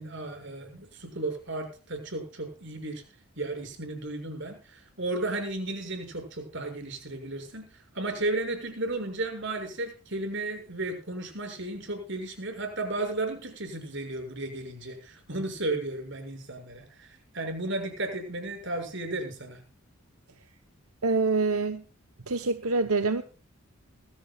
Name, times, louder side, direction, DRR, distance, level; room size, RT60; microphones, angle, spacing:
voice 1, 0.0-3.0 3.4-19.6, right 2 dB, 55° right, 4 dB, 6.8 m, -34 dB
voice 2, 21.0-21.8 22.3-23.2, right 3 dB, 85° right, 8 dB, 1.0 m, -25 dB
20.5 x 16.0 x 2.4 m, 0.37 s
head